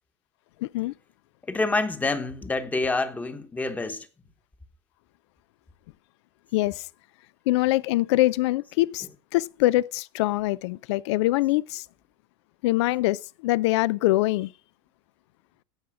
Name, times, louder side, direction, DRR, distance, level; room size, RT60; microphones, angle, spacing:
voice 1, 0.6-0.9 6.5-6.8 7.5-9.1 9.3-11.8 12.6-14.5, left 17 dB, 75° left, 0.4 m, -23 dB
voice 2, 1.5-4.1, left 3 dB, 10° left, 1.1 m, -27 dB
16.5 x 5.6 x 4.9 m
supercardioid pair, 135°, 15 cm